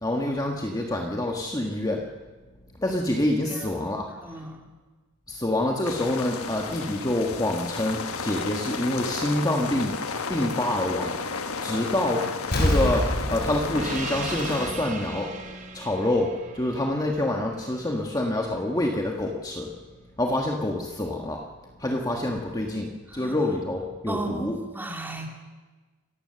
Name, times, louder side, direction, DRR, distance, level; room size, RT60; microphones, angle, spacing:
voice 1, 0.0-2.0 2.8-4.1 5.3-9.9 10.3-11.1 11.6-12.2 12.6-15.3 15.7-19.7 20.2-21.4 21.8-24.6, left 1 dB, 15° left, 1 dB, 1.4 m, -27 dB
voice 2, 3.5-4.7 23.1-23.4 24.1-25.3, right 2 dB, 10° right, 1 dB, 2.9 m, -36 dB
sound 1, 5.8-14.7, left 4 dB, 75° left, 1.4 m, -33 dB
Explosion, 12.5-15.1 15.5-15.6, equal, 45° left, 5.3 m, -27 dB
Gong, 13.7-18.7, right 4 dB, 35° right, 2.7 m, -39 dB
27.5 x 15.0 x 6.8 m, 1.3 s
head